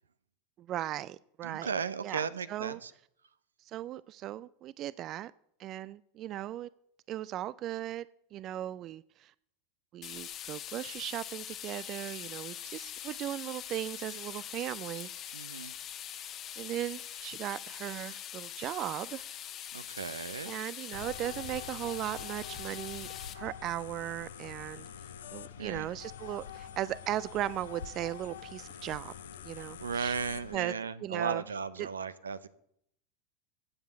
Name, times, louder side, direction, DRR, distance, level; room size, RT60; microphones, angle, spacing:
voice 1, 0.6-1.7 2.0-2.8 3.6-5.3 5.6-6.7 7.1-8.1 8.3-9.3 9.9-15.1 16.6-19.3 20.5-23.1 23.3-24.8 25.3-29.1 29.4-30.2 30.5-30.7 31.0-31.4 31.8-31.9, right 13 dB, 45° right, 0.3 m, -37 dB
voice 2, 1.4-2.9 15.3-15.7 19.7-20.5 25.6-25.9 29.6-32.5, right 6 dB, 85° right, 0.6 m, -36 dB
sound 1, 10.0-23.3, left 10 dB, 40° left, 1.2 m, -43 dB
sound 2, 20.9-30.6, left 8 dB, 75° left, 0.6 m, -45 dB
15.0 x 5.5 x 7.0 m
hypercardioid pair, 90°, 0 cm